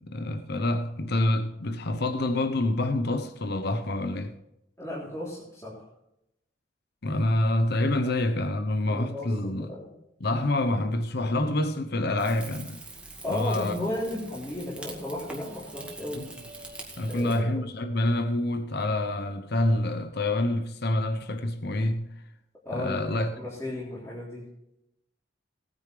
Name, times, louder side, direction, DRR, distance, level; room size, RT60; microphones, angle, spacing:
voice 1, 0.0-4.3 7.0-9.7 10.2-12.8 13.3-13.8 16.1-16.3 17.0-22.1 22.7-23.3, left 1 dB, 60° left, 0.9 m, -27 dB
voice 2, 4.8-5.9 7.8-8.1 8.9-9.9 13.2-16.3 17.1-17.6 22.6-24.5, left 1 dB, 15° left, 3.4 m, -35 dB
Rain / Fire, 12.2-17.4, right 2 dB, 5° right, 2.2 m, -44 dB
19.0 x 9.5 x 3.3 m
head